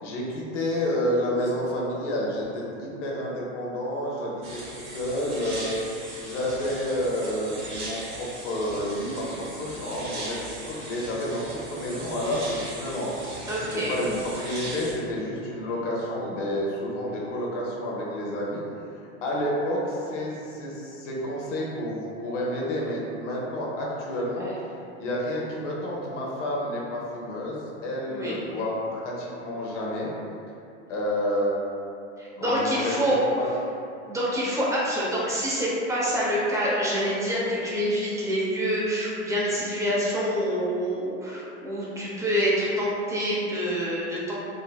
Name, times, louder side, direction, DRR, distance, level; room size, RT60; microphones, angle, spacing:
voice 1, 0.0-5.7 6.2-13.4 13.7-18.6 19.2-24.5 25.0-30.1 30.9-31.6 32.4-33.5, left 1 dB, 85° left, -4 dB, 0.8 m, -30 dB
sound 1, 4.4-14.9, right 2 dB, 50° right, 1.2 m, -39 dB
voice 2, 13.5-14.0 28.1-28.4 32.2-33.2 34.1-44.4, equal, 10° right, -7 dB, 0.6 m, -26 dB
3.6 x 2.0 x 2.3 m, 2.6 s
hypercardioid pair, 105°, 36 cm